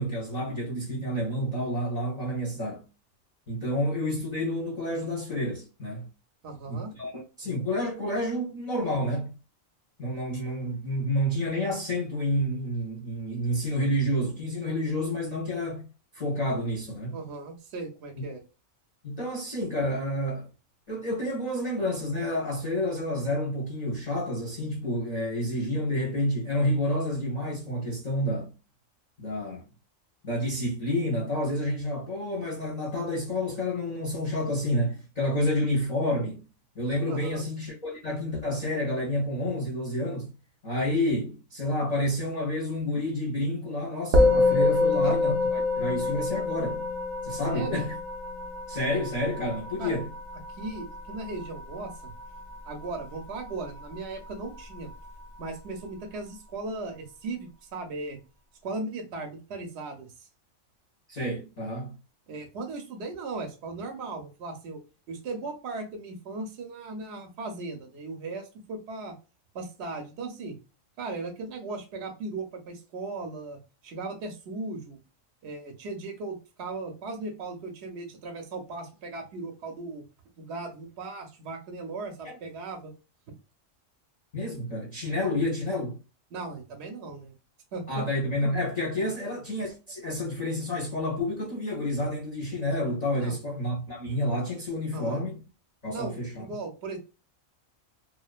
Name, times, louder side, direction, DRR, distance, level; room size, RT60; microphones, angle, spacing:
voice 1, 0.0-2.8 3.5-6.1 6.7-9.3 10.0-15.9 16.1-17.2 18.2-18.3 19.0-20.5 20.9-28.5 29.2-29.7 30.2-36.4 36.7-40.3 40.6-46.8 47.2-47.9 48.7-50.1 61.1-61.9 82.2-82.4 84.3-86.0 87.9-95.4 95.8-96.5, left 1 dB, 40° left, 0.6 m, -29 dB
voice 2, 6.4-6.9 17.1-18.4 37.1-37.4 45.0-45.2 47.5-47.8 49.8-50.0 50.5-52.1 52.6-54.9 55.4-58.2 58.6-60.3 62.3-64.8 65.1-69.2 69.5-70.6 71.0-75.0 75.4-80.0 80.4-82.9 86.3-87.4 87.7-87.8 89.0-89.1 93.2-93.4 94.9-95.2 95.9-97.0, right 3 dB, 65° right, 0.8 m, -37 dB
Musical instrument, 44.1-53.7, left 3 dB, 85° right, 0.4 m, -27 dB
2.4 x 2.2 x 2.3 m
omnidirectional pair, 1.4 m